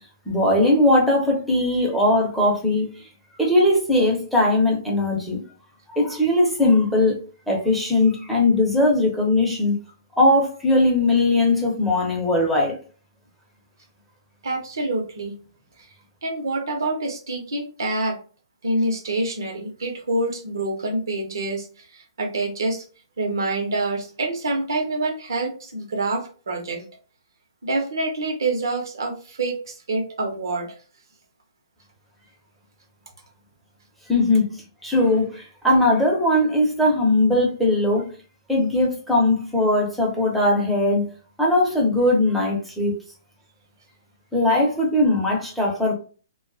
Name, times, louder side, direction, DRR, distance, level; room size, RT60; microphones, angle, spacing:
voice 1, 0.3-3.1 3.4-5.4 5.9-7.2 7.5-9.8 10.2-12.8 34.1-34.5 34.8-38.1 38.5-41.1 41.4-42.9 44.3-45.9, left 2 dB, ahead, 0.8 m, -19 dB
voice 2, 14.4-15.4 16.2-18.2 18.6-22.8 23.2-26.9 27.6-30.7, right 2 dB, 70° right, 0.8 m, -26 dB
2.5 x 2.3 x 2.5 m
figure-of-eight pair, 120°, 2 cm